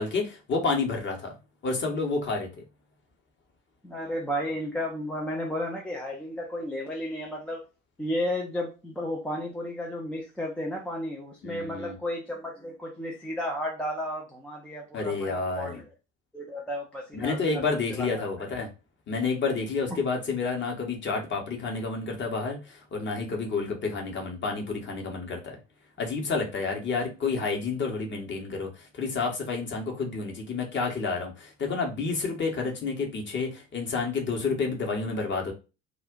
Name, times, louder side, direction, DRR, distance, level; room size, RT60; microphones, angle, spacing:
voice 1, 0.0-1.3 1.6-2.6 11.4-12.0 14.9-15.8 17.1-18.7 19.1-25.6 26.0-35.5, left 4 dB, 30° left, 2 dB, 0.9 m, -30 dB
voice 2, 3.8-7.6 8.0-15.8 16.3-17.6 18.0-18.1, equal, 5° left, -1 dB, 0.4 m, -33 dB
2.4 x 2.1 x 3.5 m, 0.30 s
figure-of-eight pair, 60°, 39 cm